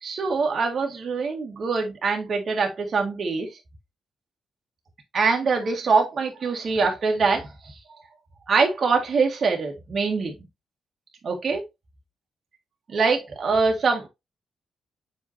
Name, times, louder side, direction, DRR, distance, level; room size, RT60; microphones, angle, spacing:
voice 1, 0.0-3.5 5.1-7.5 8.5-10.3 11.2-11.6 12.9-14.1, right 4 dB, 55° right, 1.9 m, -23 dB
7.3 x 5.0 x 2.8 m
supercardioid pair, 60°, 0 cm